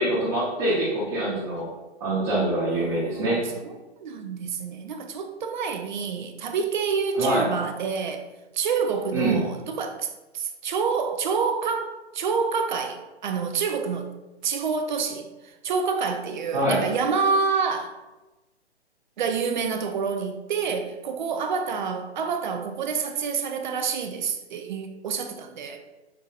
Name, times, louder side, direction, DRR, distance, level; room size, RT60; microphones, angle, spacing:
voice 1, 0.0-1.6 2.0-3.4 7.2-7.4 9.1-9.4 16.5-16.8, right 1 dB, 30° right, 1.0 m, -24 dB
voice 2, 2.7-8.2 8.5-14.1 14.4-18.0 19.2-25.8, right 5 dB, 45° right, 0.4 m, -28 dB
5.4 x 2.6 x 2.4 m
figure-of-eight pair, 130°, 33 cm